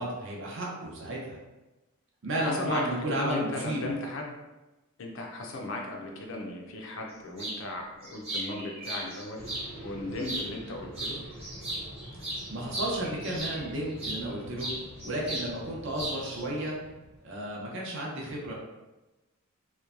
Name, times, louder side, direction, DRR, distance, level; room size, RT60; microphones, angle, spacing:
voice 1, 0.0-1.4 2.2-3.9 12.5-14.7 15.0-16.7 17.2-18.5, right 1 dB, 55° right, -3 dB, 0.6 m, -33 dB
voice 2, 2.4-4.3 5.0-9.4 9.8-11.2, left 2 dB, 55° left, 0 dB, 0.4 m, -36 dB
sound 1, 7.4-7.6 8.0-9.7 10.2-10.7 10.9-14.2 14.6-15.5 15.7-16.4, right 1 dB, 30° right, 1.0 m, -36 dB
sound 2, 9.4-17.7, equal, 5° left, 0.5 m, -47 dB
3.0 x 2.1 x 2.4 m, 1.1 s
head